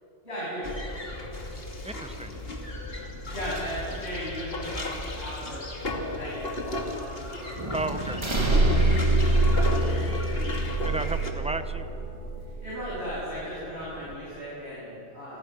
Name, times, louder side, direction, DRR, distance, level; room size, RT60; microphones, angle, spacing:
voice 1, 0.2-0.6 3.3-5.6 5.9-7.8 8.1-8.5 9.4-9.6 12.6-15.4, equal, 75° left, -9 dB, 8.5 m, -37 dB
sound 1, 0.6-11.3, left 2 dB, 60° left, 2.6 m, -35 dB
voice 2, 1.8-2.3 7.7-8.2 10.8-11.9, right 2 dB, 5° right, 9 dB, 0.9 m, -33 dB
sound 2, 2.3-14.2, right 1 dB, 25° right, 1.9 m, -39 dB
sound 3, 8.3-13.3, right 2 dB, 80° right, 2.2 m, -25 dB
28.5 x 24.5 x 6.3 m, 2.9 s
omnidirectional pair, 1.1 m